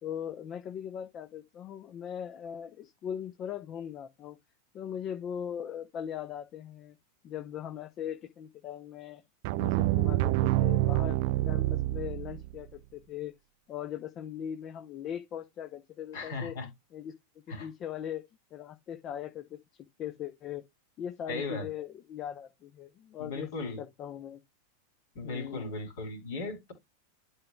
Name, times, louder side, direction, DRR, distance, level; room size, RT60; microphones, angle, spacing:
voice 1, 0.0-4.4 4.7-7.0 7.2-9.2 9.5-11.2 11.5-13.3 13.7-16.6 16.9-17.1 17.5-18.2 18.5-19.6 20.0-20.7 21.0-23.5 23.8-24.4 25.2-25.6, left 9 dB, 30° left, 0.8 m, -39 dB
sound 1, 9.4-12.6, right 17 dB, 50° right, 0.3 m, -27 dB
voice 2, 16.1-16.7 17.5-17.7 21.3-21.7 23.2-23.8 25.1-26.7, left 3 dB, 55° left, 3.5 m, -37 dB
12.0 x 4.9 x 2.3 m
figure-of-eight pair, 90°, 0 cm